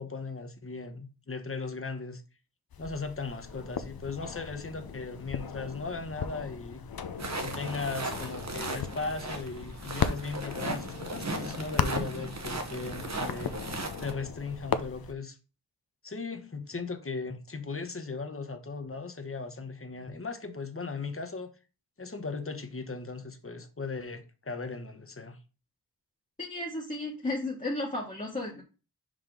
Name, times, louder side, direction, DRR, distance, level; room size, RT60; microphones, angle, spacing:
voice 1, 0.0-2.2 2.8-6.8 7.4-13.5 14.0-15.4 16.0-21.5 22.0-25.4, left 4 dB, 35° left, 1.1 m, -37 dB
sound 1, 2.7-15.1, left 6 dB, 65° left, 0.7 m, -37 dB
sound 2, 7.2-14.1, right 2 dB, 45° right, 1.1 m, -37 dB
voice 2, 26.4-28.6, left 2 dB, 20° left, 1.4 m, -34 dB
5.6 x 5.0 x 3.8 m
wide cardioid pair, 80°, 38 cm